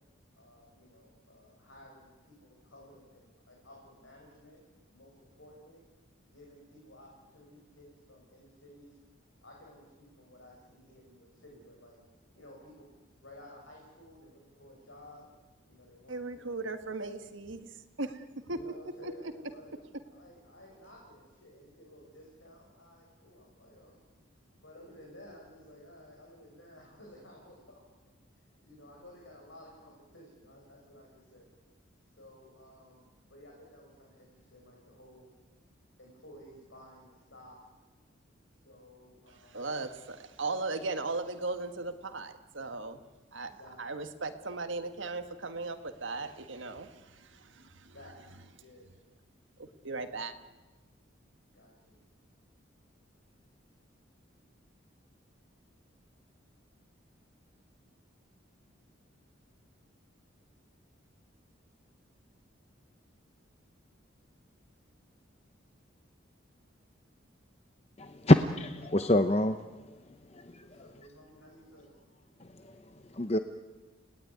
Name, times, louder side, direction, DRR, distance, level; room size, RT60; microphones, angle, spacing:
voice 1, 0.3-4.6 4.9-5.8 6.2-9.0 9.4-12.0 12.3-15.3 15.7-16.6 18.5-19.8 20.0-24.0 24.5-27.8 28.6-31.5 32.0-35.3 36.0-37.6 38.6-39.7 43.4-44.1 47.9-48.2 48.6-49.0 51.5-52.0 70.6-72.0, left 1 dB, 75° left, 5.9 m, -54 dB
voice 2, 16.1-18.6 19.0-19.1 39.4-43.0 43.3-43.5 43.8-47.9 49.6-50.3, right 3 dB, 75° right, 1.6 m, -37 dB
voice 3, 68.0-69.6 70.3-70.6 72.6-72.7 73.1-73.4, left 1 dB, 30° left, 0.8 m, -25 dB
29.5 x 18.5 x 9.5 m
head